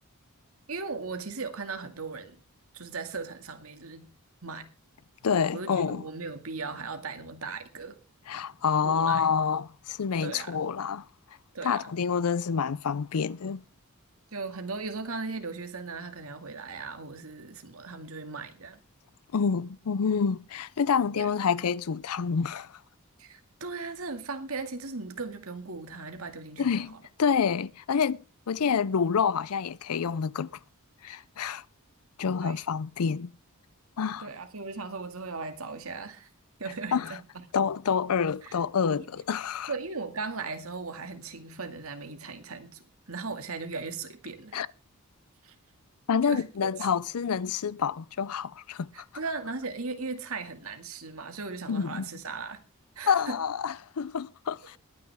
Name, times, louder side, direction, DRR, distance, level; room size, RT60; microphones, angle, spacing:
voice 1, 0.7-2.4 2.7-4.1 4.4-4.7 5.5-8.0 8.8-9.4 10.2-10.6 11.5-11.9 14.3-18.8 21.1-21.3 23.2-26.9 32.4-32.6 34.2-36.3 36.6-37.5 38.4-38.6 39.0-39.1 39.7-44.6 45.4-45.5 46.3-46.7 48.9-52.6 53.0-53.4, right 4 dB, 75° right, 2.1 m, -38 dB
voice 2, 5.2-6.0 8.3-11.0 11.6-13.6 19.3-22.8 26.6-30.5 31.0-31.6 32.2-33.3 34.0-34.3 36.9-37.1 37.5-39.7 44.5-44.7 46.1-48.9 51.7-52.1 53.1-54.8, left 6 dB, 90° left, 0.5 m, -28 dB
20.5 x 9.5 x 3.5 m
head